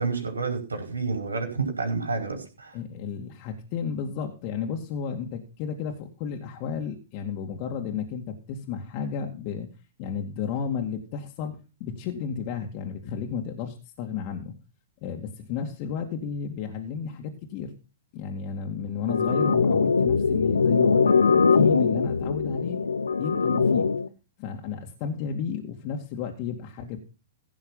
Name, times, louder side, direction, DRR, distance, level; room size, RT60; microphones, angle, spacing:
voice 1, 0.0-2.8, right 4 dB, 90° right, 3 dB, 4.9 m, -29 dB
voice 2, 2.7-9.7 10.0-14.5 15.0-17.7 18.1-22.8 23.2-23.9 24.4-27.0, left 7 dB, 45° left, 2 dB, 2.3 m, -32 dB
sound 1, 19.1-24.1, left 5 dB, 85° left, 0.8 m, -22 dB
16.5 x 6.4 x 5.6 m, 0.32 s
hypercardioid pair, 115°, 0 cm